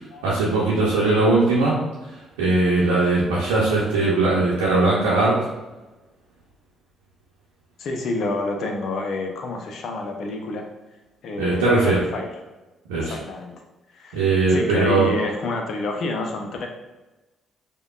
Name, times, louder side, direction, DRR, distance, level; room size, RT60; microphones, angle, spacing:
voice 1, 0.2-1.8 2.4-5.3 11.4-12.0 12.9-13.1 14.1-15.1, right 3 dB, 80° right, -7 dB, 0.7 m, -19 dB
voice 2, 7.8-10.7 11.2-12.4 12.9-13.5 13.9-16.7, left 2 dB, 60° left, 3 dB, 0.6 m, -29 dB
5.0 x 2.3 x 2.4 m, 1.1 s
hypercardioid pair, 45°, 0 cm